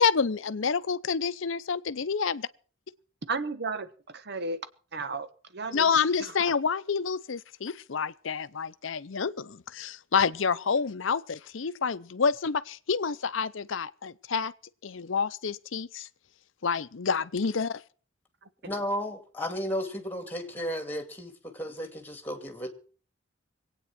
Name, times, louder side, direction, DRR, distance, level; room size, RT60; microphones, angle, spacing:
voice 1, 0.0-2.5 5.7-14.5 14.8-16.1 16.6-17.8, left 5 dB, 70° left, 0.7 m, -28 dB
voice 2, 3.3-4.6 4.9-5.3 5.5-6.5 18.6-18.7, right 3 dB, 55° right, 1.3 m, -34 dB
voice 3, 18.6-22.7, equal, 10° left, 2.4 m, -34 dB
22.5 x 9.1 x 6.0 m
head